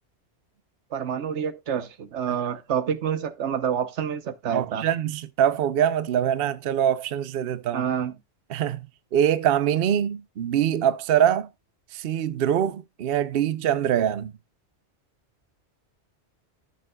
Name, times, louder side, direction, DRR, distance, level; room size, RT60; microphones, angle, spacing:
voice 1, 0.9-4.8 7.7-8.1, right 8 dB, 85° right, 1.2 m, -28 dB
voice 2, 4.5-7.8 8.5-8.9 9.1-11.5 11.9-14.3, right 9 dB, 60° right, 0.8 m, -23 dB
14.5 x 6.7 x 2.2 m
omnidirectional pair, 1.1 m